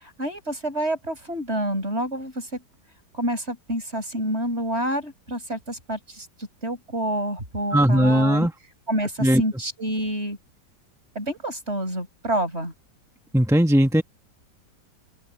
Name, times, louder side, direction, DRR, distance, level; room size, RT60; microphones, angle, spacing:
voice 1, 0.0-2.6 3.1-8.5 8.9-10.4 11.2-12.7, right 1 dB, 35° right, 7.5 m, -28 dB
voice 2, 7.7-8.5 9.2-9.4 13.3-14.0, equal, ahead, 1.2 m, -18 dB
open air
omnidirectional pair, 1.9 m